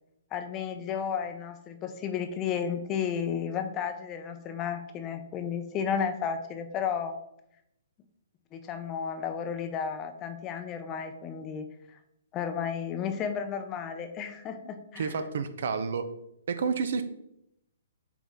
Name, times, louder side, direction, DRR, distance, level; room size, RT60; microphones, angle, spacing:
voice 1, 0.3-7.2 8.5-12.0 12.3-15.2, left 7 dB, 25° left, 8 dB, 0.6 m, -33 dB
voice 2, 15.0-16.1 16.5-17.0, right 5 dB, 65° right, 10 dB, 0.7 m, -30 dB
7.2 x 4.2 x 3.6 m, 0.80 s
hypercardioid pair, 150°, 0 cm